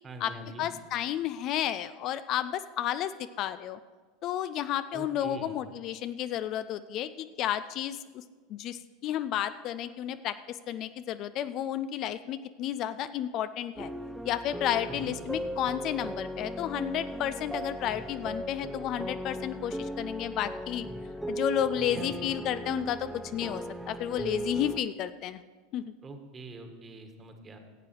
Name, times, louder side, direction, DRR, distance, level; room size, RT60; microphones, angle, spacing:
voice 1, 0.0-0.7 4.9-5.6 14.9-15.1 21.8-22.3 26.0-27.6, right 2 dB, 25° right, 5 dB, 1.7 m, -44 dB
voice 2, 0.6-3.8 4.2-8.2 8.5-13.9 14.2-20.9 21.3-25.4 25.7-25.9, left 11 dB, 45° left, 12 dB, 0.4 m, -32 dB
sound 1, 13.8-24.8, right 1 dB, 5° right, 0.7 m, -37 dB
15.0 x 8.4 x 4.6 m, 1.4 s
figure-of-eight pair, 80°, 0 cm